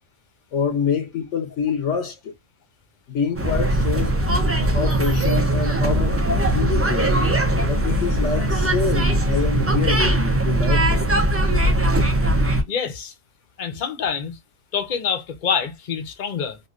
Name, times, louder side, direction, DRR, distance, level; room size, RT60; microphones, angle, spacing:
voice 1, 0.5-2.3 3.1-4.1 4.7-7.2 7.7-11.1, left 6 dB, 70° left, 1.1 m, -26 dB
sound 1, 3.4-12.6, right 1 dB, 20° right, 0.3 m, -20 dB
voice 2, 12.7-13.1 13.6-14.4 14.7-16.6, left 7 dB, 45° left, 0.8 m, -26 dB
3.1 x 2.5 x 2.4 m
omnidirectional pair, 1.3 m